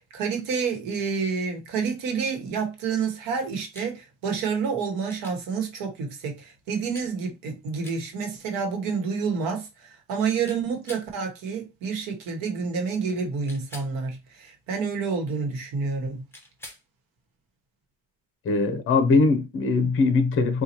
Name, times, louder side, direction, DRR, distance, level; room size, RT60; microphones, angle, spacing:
voice 1, 0.0-16.2, right 5 dB, 80° right, 1.1 m, -29 dB
sound 1, 3.7-3.9 5.1-5.4 6.9-7.1 7.8-8.0 10.5-11.1 13.5-13.9 16.3-16.8 19.1-19.2, left 2 dB, 5° left, 0.9 m, -45 dB
voice 2, 18.4-20.6, left 3 dB, 40° left, 0.7 m, -21 dB
4.1 x 2.3 x 2.9 m
cardioid pair, 135°, 34 cm